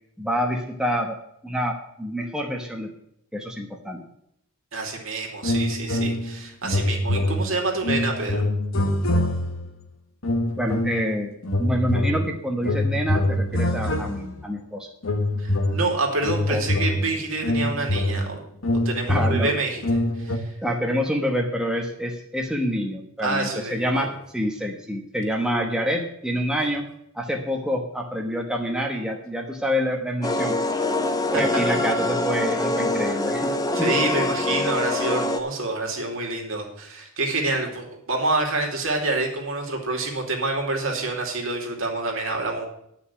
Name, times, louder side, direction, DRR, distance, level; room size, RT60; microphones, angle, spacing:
voice 1, 0.2-1.2 1.4-2.9 3.3-4.0 10.6-11.3 11.6-14.9 16.5-16.6 19.1-19.5 20.6-26.9 27.1-30.6 31.3-33.9, equal, 5° right, 1 dB, 1.1 m, -27 dB
voice 2, 4.7-8.4 15.4-18.4 18.7-19.8 20.1-20.6 23.2-24.1 26.6-26.7 31.3-31.4 33.7-42.7, right 2 dB, 65° right, 1 dB, 2.7 m, -27 dB
sound 1, 5.4-6.4 6.6-9.7 10.2-11.1 11.4-14.5 15.0-20.4, left 1 dB, 65° left, 1.3 m, -25 dB
sound 2, 30.2-35.4, left 2 dB, 15° left, 0.9 m, -24 dB
10.5 x 5.9 x 8.1 m, 0.75 s
head